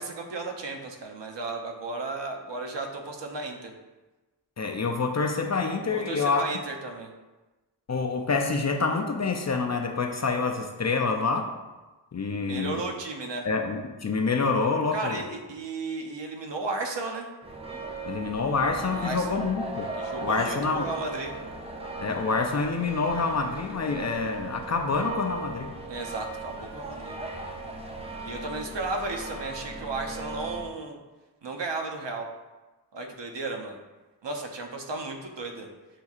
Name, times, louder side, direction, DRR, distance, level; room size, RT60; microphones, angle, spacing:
voice 1, 0.0-3.7 5.9-7.1 12.4-13.5 14.9-17.3 18.9-19.4 20.0-21.3 25.9-27.2 28.2-31.0 31.4-32.3 32.9-33.8 34.2-35.7, right 3 dB, 75° right, 2 dB, 0.7 m, -34 dB
voice 2, 4.6-6.4 7.9-11.5 12.1-12.8 13.5-15.2 18.0-19.9 20.2-20.9 22.0-25.7, left 4 dB, 40° left, 4 dB, 0.4 m, -27 dB
sound 1, 17.4-30.7, right 2 dB, 15° right, 0.5 m, -37 dB
7.3 x 2.7 x 2.4 m, 1.2 s
wide cardioid pair, 70°, 44 cm